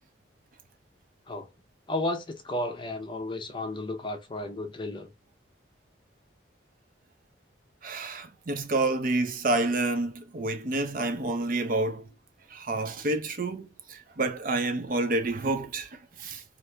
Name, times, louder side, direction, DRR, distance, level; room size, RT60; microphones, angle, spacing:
voice 1, 1.9-5.1, left 1 dB, 25° left, 0.5 m, -33 dB
voice 2, 7.8-12.1 12.5-16.4, right 2 dB, 45° right, 0.5 m, -29 dB
2.8 x 2.5 x 3.3 m
head